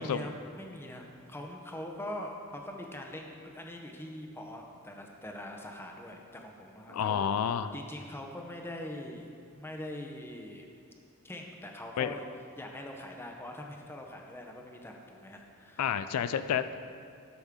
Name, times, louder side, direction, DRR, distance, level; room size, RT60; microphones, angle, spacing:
voice 1, 0.0-7.2 7.7-10.7 11.2-12.2 12.6-15.9, left 1 dB, 10° left, 1 dB, 0.7 m, -43 dB
voice 2, 6.9-7.7 12.0-12.2 15.8-16.7, left 8 dB, 90° left, 12 dB, 0.4 m, -30 dB
11.5 x 6.2 x 3.6 m, 2.4 s
head